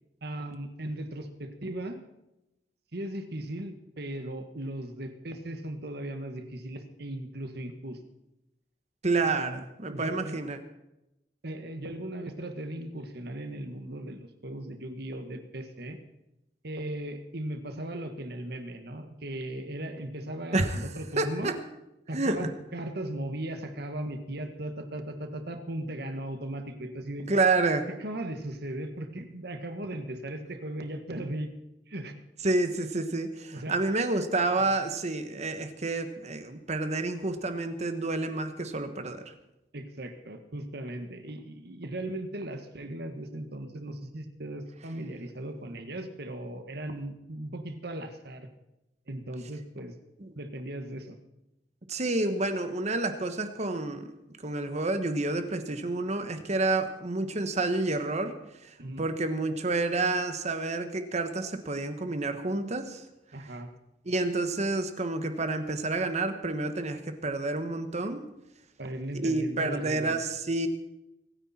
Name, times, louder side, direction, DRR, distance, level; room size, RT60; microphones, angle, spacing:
voice 1, 0.2-2.0 2.9-8.0 9.1-9.6 9.9-10.4 11.4-16.0 16.6-21.6 22.1-27.3 28.0-31.5 31.9-32.1 33.5-33.8 39.7-48.5 49.1-49.9 50.3-51.2 58.8-59.1 63.3-63.7 68.8-70.2, right 1 dB, 65° right, 7 dB, 1.6 m, -37 dB
voice 2, 9.0-10.6 20.5-20.8 21.1-21.5 22.1-22.5 27.3-27.9 32.4-39.2 50.2-50.3 51.9-54.1 54.4-58.3 58.6-58.7 59.0-63.0 64.0-68.2 69.2-70.7, right 2 dB, 40° right, 8 dB, 1.3 m, -29 dB
24.5 x 9.9 x 4.4 m, 0.91 s
head